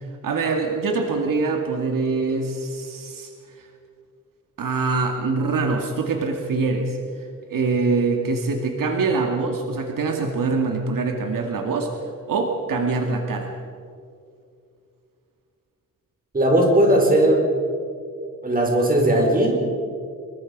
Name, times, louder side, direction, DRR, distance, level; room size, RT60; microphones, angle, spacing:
voice 1, 0.2-3.3 3.6-3.7 4.6-7.0 7.5-11.9 12.3-13.5, right 4 dB, 75° right, 3 dB, 2.3 m, -24 dB
voice 2, 16.3-17.5 18.4-19.6, right 1 dB, 25° right, 1 dB, 5.0 m, -18 dB
25.5 x 23.0 x 5.4 m, 2.4 s
wide cardioid pair, 145°, 33 cm